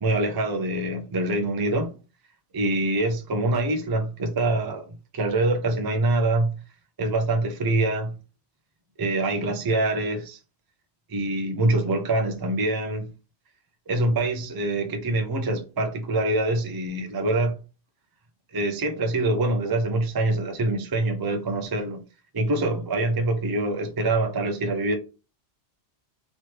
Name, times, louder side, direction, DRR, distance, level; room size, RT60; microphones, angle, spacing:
voice 1, 0.0-1.9 2.5-4.9 5.1-6.6 7.0-8.1 9.0-10.4 11.1-13.1 13.9-17.5 18.5-22.0 22.3-25.0, right 2 dB, 35° right, 0.4 m, -25 dB
3.2 x 3.0 x 2.9 m
omnidirectional pair, 1.1 m